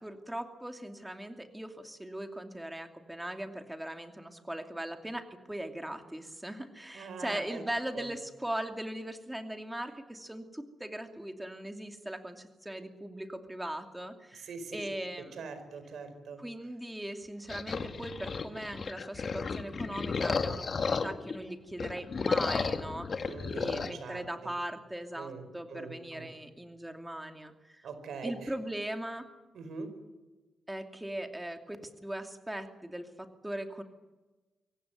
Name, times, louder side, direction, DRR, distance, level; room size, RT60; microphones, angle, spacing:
voice 1, 0.0-15.4 16.4-27.9 28.2-29.3 30.7-33.8, right 1 dB, 10° right, 5 dB, 2.6 m, -39 dB
voice 2, 6.9-7.6 7.9-8.1 14.3-14.9 15.3-16.4 23.2-24.3 25.1-26.3 27.8-28.5 29.5-29.9, right 4 dB, 80° right, 9 dB, 4.8 m, -42 dB
sound 1, 17.5-21.4 21.7-23.9, left 5 dB, 50° left, 1.7 m, -33 dB
23.5 x 17.5 x 9.3 m, 1.2 s
cardioid pair, 90°, 0 cm